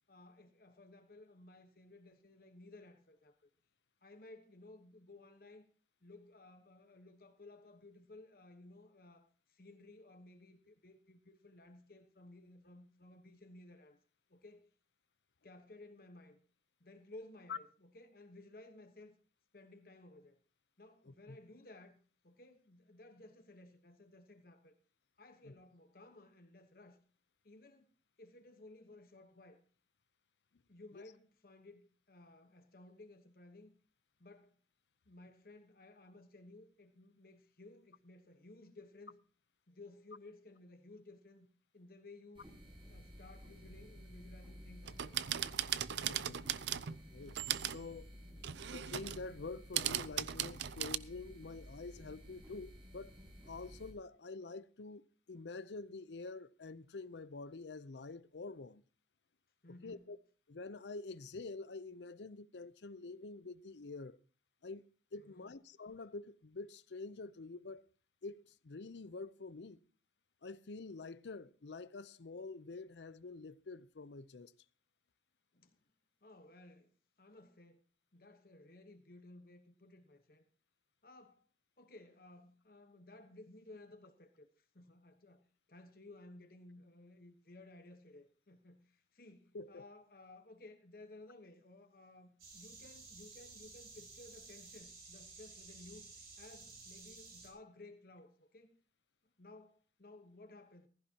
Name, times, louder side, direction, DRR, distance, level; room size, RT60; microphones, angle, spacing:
voice 1, 0.1-3.5 4.0-5.6 6.0-14.0 14.3-14.7 15.4-16.4 16.8-19.2 19.5-20.4 20.8-22.0 22.2-24.8 25.2-27.0 27.4-27.9 28.2-29.6 30.7-33.7 34.2-34.5 35.0-39.2 39.7-41.5 41.7-42.5 42.9-45.2 48.3-48.7 59.6-60.0 65.2-65.5 75.5-75.8 76.2-77.8 78.1-80.5 81.0-81.4 81.8-85.4 85.7-96.1 96.4-98.7 99.2-100.9, left 2 dB, 55° left, 1.2 m, -57 dB
voice 2, 21.0-21.4 25.4-25.5 30.9-31.0 46.1-46.4 46.9-47.3 47.6-48.1 48.5-53.1 53.5-58.8 59.8-60.2 60.5-64.2 64.6-67.9 68.2-69.8 70.4-74.5 89.5-89.8, left 3 dB, 85° left, 0.6 m, -47 dB
sound 1, 42.3-53.9, equal, 30° right, 7.6 m, -54 dB
sound 2, 44.9-47.0 47.3-47.8 48.4-49.2 49.7-51.0, right 11 dB, 80° right, 0.5 m, -38 dB
sound 3, 92.4-97.5, right 3 dB, 65° right, 5.2 m, -54 dB
15.5 x 14.5 x 2.9 m
head